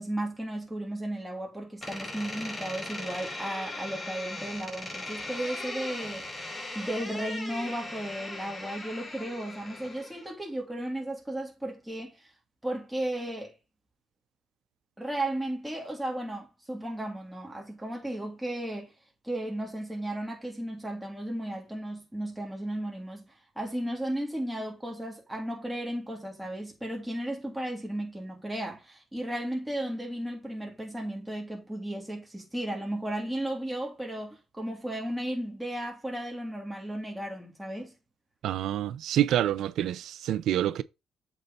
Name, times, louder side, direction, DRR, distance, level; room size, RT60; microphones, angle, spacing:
voice 1, 0.0-12.3 12.6-13.5 15.0-18.9 19.2-37.9, right 1 dB, 10° right, 3.0 m, -35 dB
Door, 1.8-10.3, left 2 dB, 20° left, 5.0 m, -39 dB
voice 2, 38.4-40.8, right 12 dB, 80° right, 0.5 m, -27 dB
8.0 x 4.3 x 4.2 m
cardioid pair, 90°, 0 cm